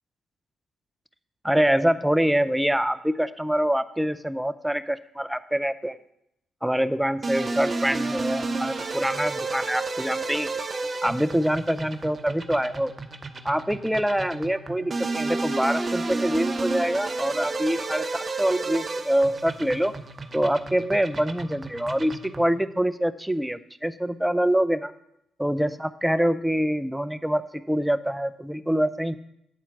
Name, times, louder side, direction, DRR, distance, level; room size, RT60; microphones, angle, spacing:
voice 1, 1.4-6.0 6.6-10.5 11.0-12.9 13.4-19.9 20.3-24.9 25.4-29.2, equal, 5° right, 12 dB, 0.6 m, -25 dB
sound 1, 7.2-22.6, right 3 dB, 40° right, 0.8 m, -31 dB
8.6 x 4.4 x 7.1 m, 0.80 s
hypercardioid pair, 45°, 0 cm